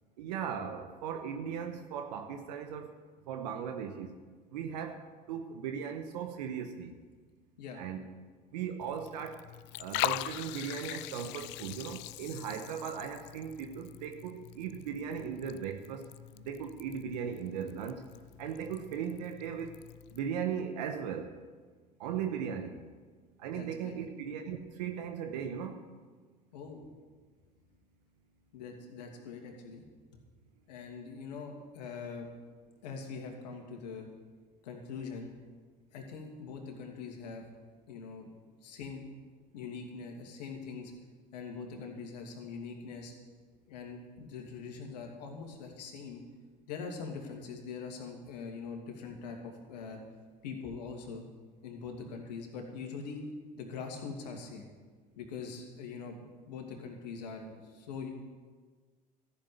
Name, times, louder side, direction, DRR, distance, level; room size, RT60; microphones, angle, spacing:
voice 1, 0.2-2.9 3.3-4.1 4.5-7.0 7.7-8.1 8.5-9.4 9.8-18.0 18.4-19.7 20.1-21.3 22.0-22.8 23.4-25.8, right 7 dB, 75° right, 6 dB, 1.2 m, -38 dB
Liquid, 8.8-20.2, left 18 dB, 60° left, 0.4 m, -42 dB
voice 2, 23.5-24.1 26.5-26.9 28.5-29.8 30.1-30.2 30.7-32.3 32.8-34.1 34.6-35.3 35.9-37.4 37.9-38.3 38.6-39.0 39.5-40.9 41.3-43.1 43.7-46.2 46.7-50.0 50.4-51.2 51.6-53.2 53.6-54.7 55.2-58.1, left 5 dB, 80° left, 2 dB, 2.6 m, -43 dB
14.0 x 7.3 x 9.5 m, 1.5 s
hypercardioid pair, 70°, 21 cm